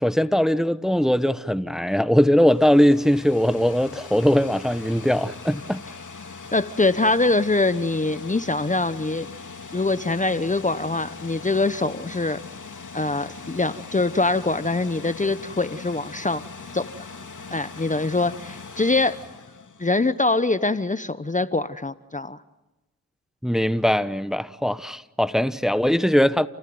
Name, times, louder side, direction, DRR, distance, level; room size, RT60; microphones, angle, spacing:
voice 1, 0.0-5.8 23.4-26.5, equal, ahead, 1.1 m, -20 dB
sound 1, 2.2-20.3, left 4 dB, 60° left, 2.8 m, -41 dB
voice 2, 6.5-9.3 9.7-12.4 12.9-16.4 16.7-16.9 17.5-19.2 19.8-22.4, left 2 dB, 25° left, 0.9 m, -23 dB
29.5 x 18.5 x 9.4 m
cardioid pair, 50°, 34 cm